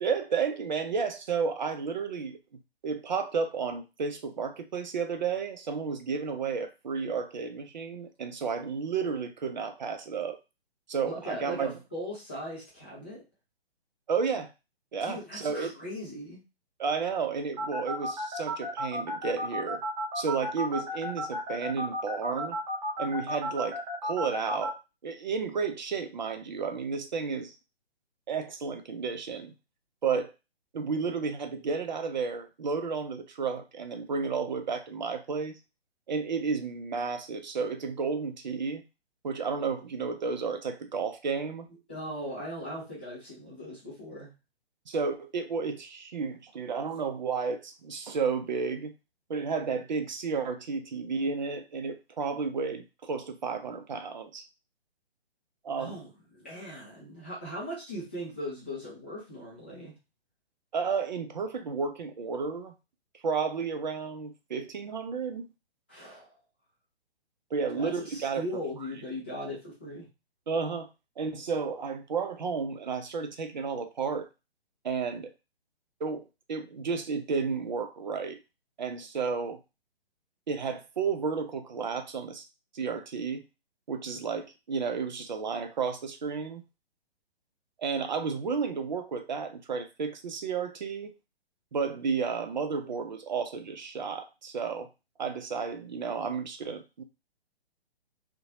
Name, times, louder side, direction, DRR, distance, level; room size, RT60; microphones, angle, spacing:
voice 1, 0.0-2.4 2.8-10.4 10.9-11.7 14.1-14.5 14.9-15.7 16.8-19.8 20.1-22.6 23.0-24.8 25.0-27.6 28.3-29.5 30.0-30.3 30.7-35.6 36.1-38.8 39.2-41.7 44.9-48.9 49.3-54.4 55.6-56.0 60.7-62.7 63.2-65.5 67.5-68.4 70.5-70.9 71.2-74.3 74.8-75.3 76.0-78.4 78.8-79.6 80.5-82.4 82.7-83.4 83.9-86.6 87.8-91.2 91.7-94.9 95.2-97.0, right 5 dB, 45° right, 0.5 m, -32 dB
voice 2, 11.1-13.2 15.0-16.4 41.9-44.3 55.8-59.9 65.9-66.3 67.7-70.1, equal, 10° left, 0.4 m, -39 dB
sound 1, 17.6-24.7, equal, 25° right, 0.8 m, -33 dB
2.7 x 2.2 x 2.7 m
figure-of-eight pair, 135°, 32 cm